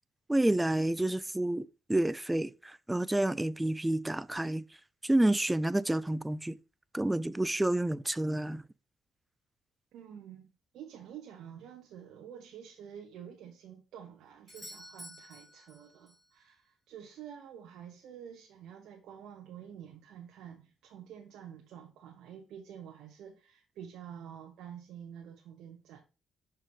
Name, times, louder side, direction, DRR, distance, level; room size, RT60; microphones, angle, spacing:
voice 1, 0.3-4.6 5.0-6.5 6.9-8.6, right 1 dB, 10° right, 0.3 m, -29 dB
voice 2, 9.9-26.0, right 9 dB, 85° right, 0.8 m, -49 dB
Doorbell, 14.5-16.3 20.4-20.5, left 1 dB, 5° left, 2.0 m, -50 dB
5.9 x 4.5 x 3.6 m
cardioid pair, 90°, 0 cm